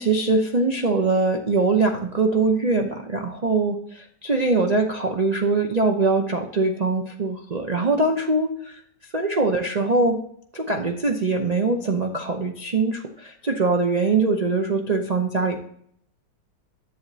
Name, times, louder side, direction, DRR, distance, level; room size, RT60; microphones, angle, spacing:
voice 1, 0.0-8.8 9.1-10.2 10.5-15.6, right 3 dB, 80° right, 3 dB, 0.3 m, -22 dB
11.0 x 8.0 x 2.8 m, 0.68 s
omnidirectional pair, 2.0 m